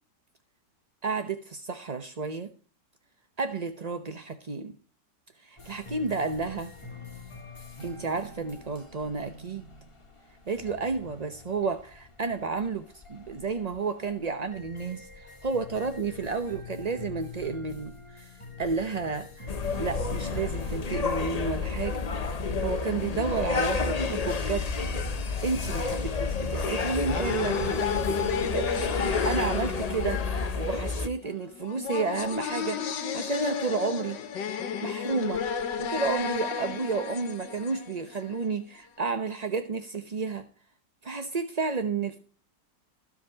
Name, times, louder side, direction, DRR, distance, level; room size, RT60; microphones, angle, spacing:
voice 1, 1.0-2.5 3.4-4.7 5.4-6.7 7.8-9.6 10.5-18.3 18.6-22.0 22.6-24.7 25.4-34.4 34.8-35.5 35.8-40.5 41.0-42.2, right 4 dB, 35° right, 0.6 m, -31 dB
sound 1, 5.6-24.3, left 4 dB, 15° left, 1.9 m, -46 dB
sound 2, 19.5-31.1, left 4 dB, 40° left, 0.6 m, -30 dB
sound 3, 26.6-38.5, left 7 dB, 80° left, 1.8 m, -32 dB
15.5 x 5.3 x 8.9 m
omnidirectional pair, 1.9 m